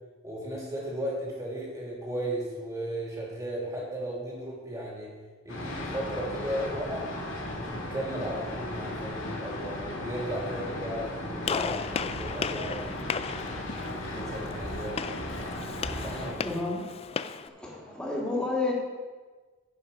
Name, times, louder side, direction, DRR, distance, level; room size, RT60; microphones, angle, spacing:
voice 1, 0.2-5.1 5.4-7.1 7.5-12.8 14.1-15.0 15.8-16.6, right 1 dB, 20° right, -3 dB, 2.6 m, -35 dB
sound 1, 5.5-16.3, left 1 dB, 80° left, 2.1 m, -36 dB
Gunshot gunfire, 11.4-17.5, left 6 dB, 30° left, 0.3 m, -35 dB
voice 2, 16.1-16.8 17.4-18.7, left 2 dB, 5° left, -5 dB, 2.3 m, -32 dB
11.0 x 6.0 x 5.4 m, 1.4 s
head